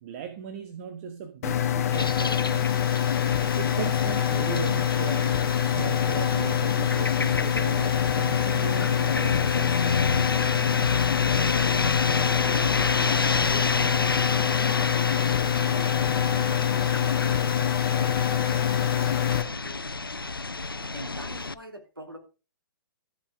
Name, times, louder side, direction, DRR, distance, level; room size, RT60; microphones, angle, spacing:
voice 1, 0.0-2.8 3.6-10.0, right 7 dB, 35° right, 1.3 m, -38 dB
sound 1, 1.4-19.4, left 10 dB, 45° left, 1.2 m, -25 dB
sound 2, 1.9-21.5, left 3 dB, 85° left, 0.6 m, -30 dB
voice 2, 13.0-19.9 20.7-22.2, right 1 dB, 85° right, 3.2 m, -44 dB
13.5 x 5.9 x 5.1 m
figure-of-eight pair, 120°, 12 cm